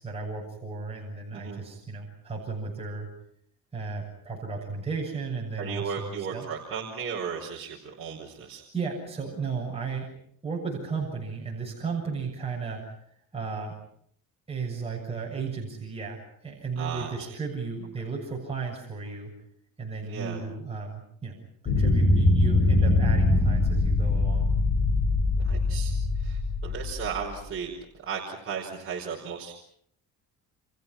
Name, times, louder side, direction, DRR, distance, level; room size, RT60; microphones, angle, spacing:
voice 1, 0.0-3.1 3.7-6.5 8.7-10.1 10.4-12.9 13.3-13.7 14.5-19.3 19.8-21.4 21.6-24.6, right 4 dB, 15° right, -2 dB, 7.0 m, -34 dB
voice 2, 5.6-8.6 16.8-17.1 20.0-20.4 25.4-25.9 26.2-27.7 28.1-29.5, right 6 dB, 35° right, -1 dB, 4.9 m, -35 dB
sound 1, 21.7-27.4, left 2 dB, 30° left, 5.4 m, -23 dB
29.5 x 27.5 x 6.0 m, 0.68 s
cardioid pair, 150°, 37 cm